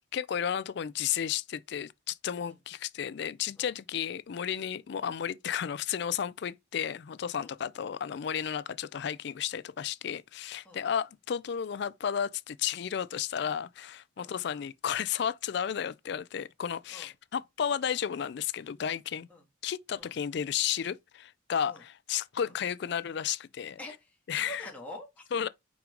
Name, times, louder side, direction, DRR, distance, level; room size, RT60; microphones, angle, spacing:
voice 1, 0.1-19.3 19.6-23.8 24.3-24.6 25.3-25.5, left 8 dB, 55° left, 0.3 m, -33 dB
voice 2, 23.8-25.3, left 1 dB, 5° left, 1.9 m, -46 dB
5.9 x 5.0 x 3.8 m
head